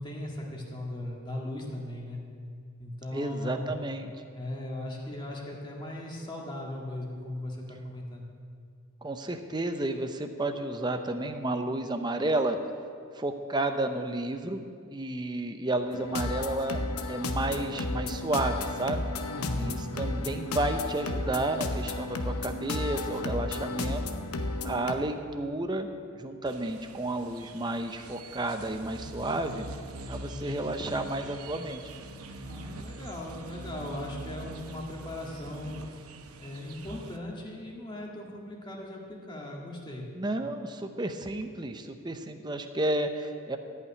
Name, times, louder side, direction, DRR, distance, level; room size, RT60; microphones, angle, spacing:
voice 1, 0.0-2.2 2.8-3.7 4.3-8.3 19.3-19.8 30.2-30.6 32.4-35.8 36.4-40.1, left 1 dB, 20° left, -2 dB, 1.8 m, -38 dB
voice 2, 3.1-4.1 9.0-12.6 13.1-14.6 14.9-16.8 17.1-19.0 19.5-24.0 24.6-25.9 26.2-29.7 30.1-31.8 40.1-43.6, right 2 dB, 20° right, 7 dB, 0.6 m, -31 dB
sound 1, 15.9-24.9, left 2 dB, 85° left, 0.9 m, -33 dB
sound 2, 26.4-37.2, right 2 dB, 80° right, 0.8 m, -44 dB
13.5 x 5.8 x 9.4 m, 2.3 s
head